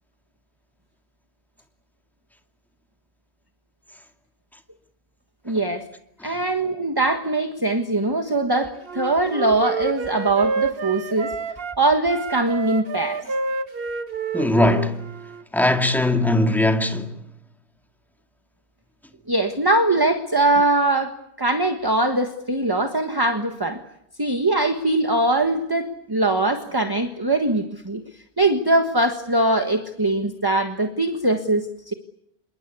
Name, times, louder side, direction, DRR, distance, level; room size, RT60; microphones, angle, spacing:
voice 1, 5.4-5.9 6.2-11.3 11.8-13.2 19.3-23.8 24.2-28.0 28.4-31.9, right 2 dB, 20° right, 1.5 m, -22 dB
Wind instrument woodwind instrument, 8.8-11.8 12.1-15.4, right 5 dB, 60° right, 1.4 m, -29 dB
voice 2, 14.3-15.0 15.5-17.2, left 1 dB, ahead, 2.2 m, -20 dB
27.0 x 22.5 x 8.4 m
omnidirectional pair, 1.1 m